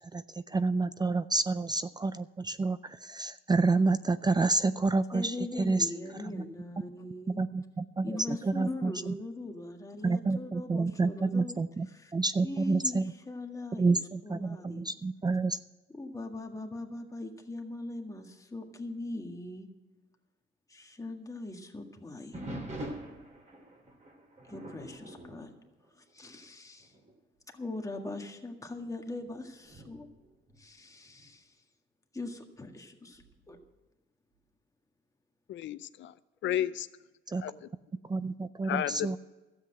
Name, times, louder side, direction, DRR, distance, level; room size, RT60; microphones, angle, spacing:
voice 1, 0.5-5.2 5.6-5.8 7.4-8.9 10.0-11.9 12.1-13.0 13.8-15.6 37.3-37.4 38.1-39.2, right 3 dB, 20° right, 14 dB, 0.4 m, -28 dB
voice 2, 5.1-7.5 8.0-12.1 12.4-15.0 15.9-19.7 20.7-22.5 24.4-25.5 26.0-27.0 27.5-30.1 30.6-31.6 32.1-33.6, left 2 dB, 15° left, 3 dB, 1.8 m, -41 dB
sound 1, 22.3-26.5 26.8-27.1 27.8-27.9 28.6-31.3 33.1-33.7, right 1 dB, 35° right, 3.3 m, -45 dB
voice 3, 35.5-36.1 36.4-36.9 37.4-37.7 38.6-39.2, left 12 dB, 70° left, 15 dB, 0.6 m, -32 dB
12.5 x 8.0 x 7.6 m, 1.1 s
cardioid pair, 90°, 20 cm